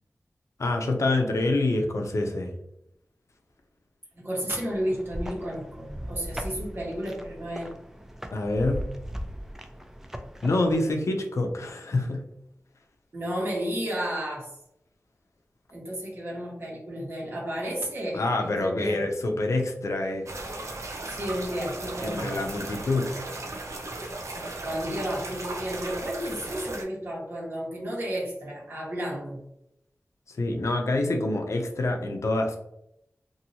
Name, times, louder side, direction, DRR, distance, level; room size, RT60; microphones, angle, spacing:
voice 1, 0.6-2.5 8.3-8.9 10.4-12.3 18.1-20.3 22.0-23.1 23.9-24.0 30.3-32.6, left 2 dB, 75° left, 3 dB, 0.5 m, -26 dB
voice 2, 4.1-7.7 13.1-14.5 15.7-19.0 21.1-22.4 24.3-29.4, equal, 45° right, -5 dB, 1.2 m, -32 dB
sound 1, 4.7-10.8, equal, 10° right, 0.3 m, -38 dB
sound 2, 20.3-26.8, right 2 dB, 80° right, 0.5 m, -36 dB
2.8 x 2.6 x 2.7 m, 0.78 s
wide cardioid pair, 80°, 5 cm